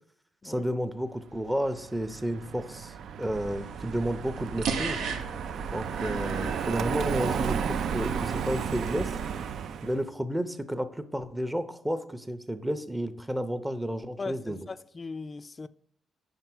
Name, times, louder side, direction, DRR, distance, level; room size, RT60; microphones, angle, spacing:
voice 1, 0.4-5.0 5.7-9.2 9.8-14.6, equal, 10° right, 0.6 m, -32 dB
Car passing by, 1.5-10.0, right 7 dB, 70° right, 0.4 m, -33 dB
sound 1, 3.3-7.5, right 5 dB, 85° right, 0.8 m, -36 dB
voice 2, 14.2-15.7, left 4 dB, 30° left, 0.3 m, -38 dB
5.4 x 4.4 x 6.0 m
cardioid pair, 90°, 0 cm